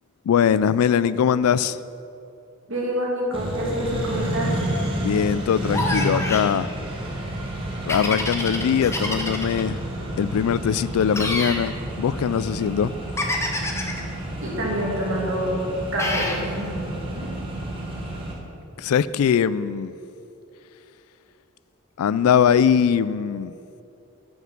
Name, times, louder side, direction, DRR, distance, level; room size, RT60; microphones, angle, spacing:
voice 1, 0.3-1.8 5.0-6.7 7.9-9.8 10.2-12.9 18.8-19.9 22.0-23.5, left 8 dB, 80° left, 0.3 m, -21 dB
voice 2, 2.7-4.5 14.4-15.6 15.9-16.9 17.1-17.3, equal, 60° right, 2.6 m, -27 dB
Accelerating revving vroom, 3.3-18.3, right 1 dB, 25° right, 1.5 m, -30 dB
sound 1, 5.7-6.5 7.9-9.6 11.1-11.6 13.2-14.0 16.0-16.4, left 2 dB, 10° left, 0.8 m, -27 dB
9.3 x 6.0 x 7.2 m
head